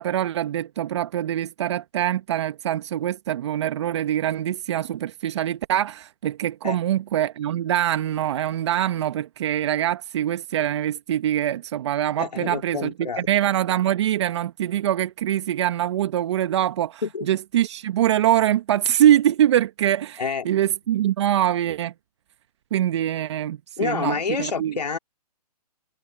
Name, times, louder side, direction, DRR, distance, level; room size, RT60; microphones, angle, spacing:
voice 1, 0.0-21.9 22.7-24.7, right 11 dB, 45° right, 1.4 m, -24 dB
voice 2, 12.2-13.3 17.0-17.3 20.2-20.5 23.8-25.0, left 5 dB, 80° left, 2.4 m, -28 dB
hypercardioid pair, 145°, 21 cm